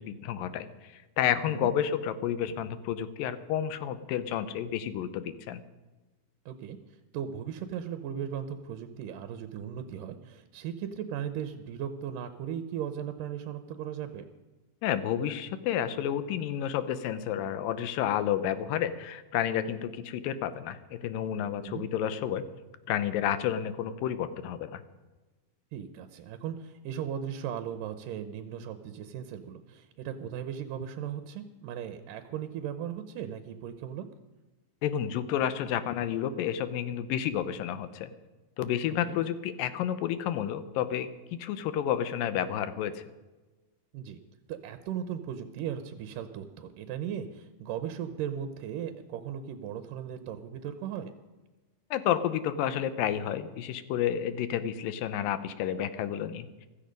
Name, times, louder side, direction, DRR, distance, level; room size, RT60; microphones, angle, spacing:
voice 1, 0.0-5.6 14.8-22.5 22.9-24.8 34.8-38.1 38.6-43.0 51.9-56.5, left 10 dB, 75° left, 13 dB, 2.4 m, -30 dB
voice 2, 6.5-14.3 21.6-21.8 25.7-34.1 39.1-39.2 43.9-44.2 44.5-51.1, right 9 dB, 75° right, 9 dB, 2.2 m, -37 dB
15.5 x 13.5 x 5.2 m, 1.2 s
omnidirectional pair, 4.3 m